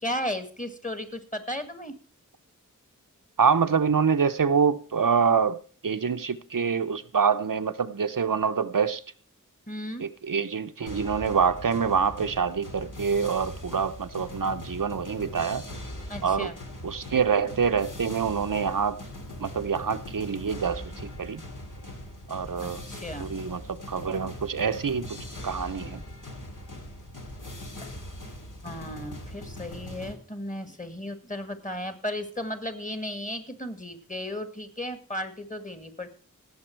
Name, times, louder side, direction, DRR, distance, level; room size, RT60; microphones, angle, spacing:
voice 1, 0.0-1.9 9.7-10.1 16.1-16.6 22.6-23.3 27.8-27.9 28.6-36.1, left 1 dB, 25° left, 9 dB, 1.8 m, -35 dB
voice 2, 3.4-5.6 5.8-9.0 10.0-15.6 16.2-16.5 16.8-19.0 19.4-21.4 22.3-22.8 23.2-25.2 25.4-26.0, right 6 dB, 90° right, 9 dB, 0.7 m, -26 dB
sound 1, 10.9-30.1, left 1 dB, 75° left, 2.4 m, -41 dB
17.5 x 7.0 x 4.5 m, 0.43 s
wide cardioid pair, 40°, 32 cm